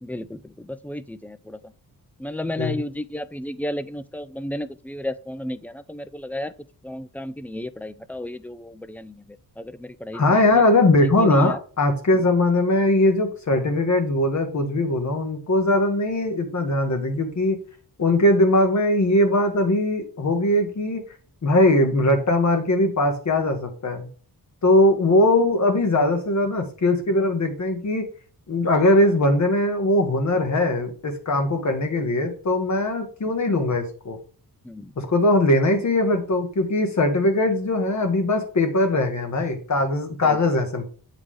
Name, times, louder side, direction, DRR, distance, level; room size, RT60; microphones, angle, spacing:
voice 1, 0.0-1.6 2.2-6.5 6.8-10.6 11.2-11.6 34.6-34.9 40.2-40.4, left 1 dB, 5° left, 0.3 m, -33 dB
voice 2, 10.1-17.6 18.0-21.0 21.4-24.1 24.6-28.0 28.5-34.2 35.0-40.9, left 1 dB, 50° left, 1.8 m, -20 dB
8.1 x 3.8 x 4.9 m
wide cardioid pair, 125°, 38 cm